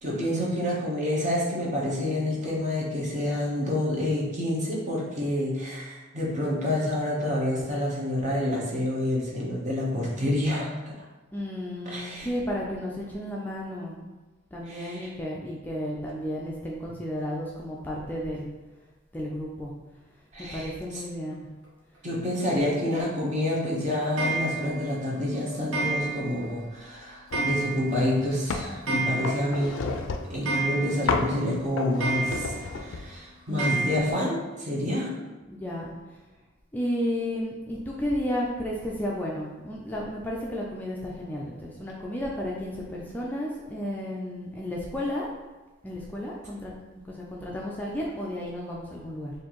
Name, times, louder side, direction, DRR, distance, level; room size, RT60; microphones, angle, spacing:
voice 1, 0.0-10.9 11.8-12.3 14.7-15.1 20.3-21.0 22.0-30.0 30.3-35.2, left 1 dB, 40° right, -4 dB, 0.9 m, -28 dB
voice 2, 11.3-14.0 14.5-18.5 19.1-19.7 20.5-21.5 33.5-34.2 35.5-35.9 36.7-45.3 45.8-46.7 47.1-49.3, left 1 dB, 10° left, -4 dB, 0.3 m, -33 dB
Clock, 24.2-24.9 25.7-26.5 26.8-26.9 27.3-28.1 28.3-28.4 28.7-29.6 30.0-30.1 30.5-31.3 32.0-32.7 33.6-34.1, right 3 dB, 75° right, 1.0 m, -30 dB
sound 1, 27.3-27.6 28.0-28.8 29.2-30.4 31.1-31.4 31.8-33.1, left 4 dB, 80° left, 0.4 m, -31 dB
4.3 x 2.6 x 2.9 m, 1.2 s
head